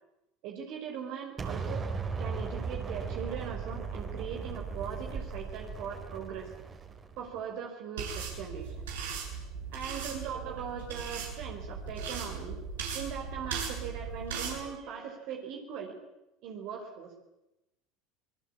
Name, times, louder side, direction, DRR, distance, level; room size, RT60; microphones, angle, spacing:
voice 1, 0.4-6.5 7.2-8.9 9.7-12.6 12.9-16.0 16.4-17.2, right 7 dB, 60° right, 1 dB, 4.6 m, -40 dB
Explosion, 1.4-7.4, right 5 dB, 30° right, 4.2 m, -37 dB
sound 1, 8.0-14.6, right 6 dB, 80° right, 7.9 m, -38 dB
27.0 x 21.0 x 8.7 m, 0.93 s
hypercardioid pair, 80°, 0 cm